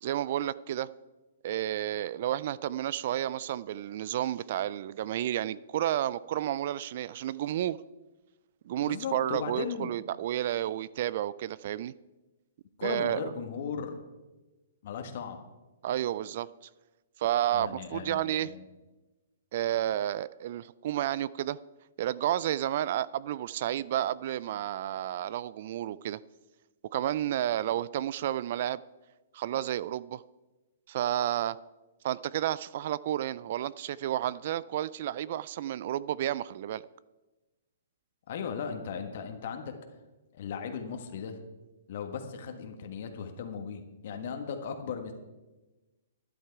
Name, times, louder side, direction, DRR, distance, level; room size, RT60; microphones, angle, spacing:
voice 1, 0.0-0.9 1.4-7.8 8.7-11.9 12.8-13.3 15.8-16.5 17.2-18.5 19.5-21.6 22.0-26.2 26.9-28.8 29.3-30.2 30.9-31.6 32.0-36.8, right 12 dB, 55° right, 19 dB, 0.3 m, -31 dB
voice 2, 8.9-9.9 12.8-14.0 14.8-15.4 17.5-18.6 38.3-39.7 40.3-41.4 41.9-45.1, left 6 dB, 55° left, 5 dB, 1.5 m, -37 dB
12.0 x 10.5 x 4.7 m, 1.1 s
hypercardioid pair, 135°, 0 cm